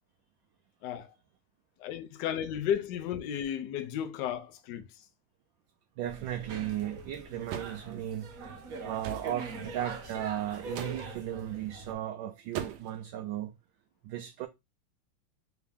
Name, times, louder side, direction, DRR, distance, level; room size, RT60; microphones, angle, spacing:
voice 1, 1.8-5.0, left 9 dB, 65° left, 1.1 m, -34 dB
sound 1, 6.0-11.9, right 3 dB, 55° right, 1.1 m, -43 dB
voice 2, 6.0-8.3 8.8-13.5 14.0-14.5, right 12 dB, 75° right, 1.2 m, -36 dB
sound 2, 7.5-7.8 9.0-9.3 10.7-11.0 12.5-13.0, right 9 dB, 90° right, 1.5 m, -38 dB
4.6 x 2.7 x 3.4 m
omnidirectional pair, 2.3 m